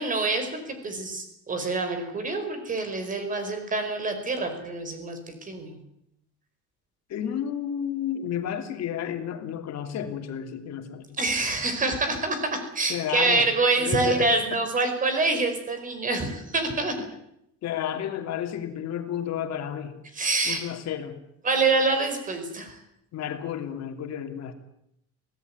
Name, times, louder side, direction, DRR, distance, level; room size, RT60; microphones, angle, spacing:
voice 1, 0.0-5.8 11.2-17.0 20.1-20.6 21.4-22.8, right 3 dB, 25° right, 7 dB, 4.9 m, -26 dB
voice 2, 7.1-11.2 12.9-13.5 13.8-14.6 17.0-17.1 17.6-20.0 20.4-21.2 23.1-24.5, left 9 dB, 60° left, 6 dB, 2.8 m, -32 dB
23.0 x 17.5 x 9.6 m, 0.77 s
cardioid pair, 175°, 29 cm